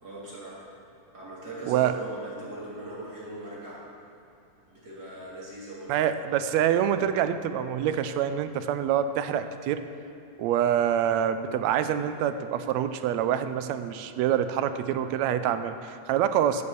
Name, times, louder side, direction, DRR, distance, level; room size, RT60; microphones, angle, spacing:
voice 1, 0.0-0.6 1.1-3.8 4.7-5.9, right 2 dB, 35° right, -7 dB, 3.2 m, -40 dB
voice 2, 5.9-9.8 10.4-16.6, right 9 dB, 80° right, 10 dB, 1.7 m, -26 dB
15.5 x 7.0 x 6.8 m, 2.6 s
omnidirectional pair, 3.4 m